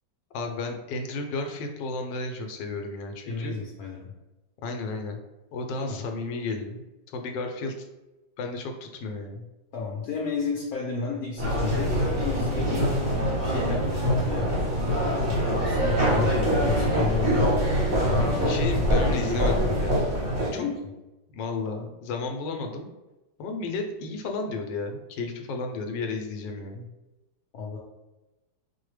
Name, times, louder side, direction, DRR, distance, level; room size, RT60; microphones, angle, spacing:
voice 1, 0.3-3.5 4.6-5.2 5.5-6.8 7.1-7.7 8.4-9.4 12.7-12.9 18.4-20.0 20.5-20.6 21.3-22.9 23.4-26.9, left 3 dB, 85° left, 4 dB, 1.3 m, -33 dB
voice 2, 3.3-4.1 5.8-6.1 9.7-12.9 13.4-14.5 14.8-17.8 18.0-18.6 20.4-20.9 27.5-27.8, left 5 dB, 65° left, -3 dB, 1.0 m, -32 dB
sound 1, 11.4-20.5, equal, 40° right, 0.6 m, -24 dB
4.7 x 2.0 x 3.2 m, 1.0 s
omnidirectional pair, 1.9 m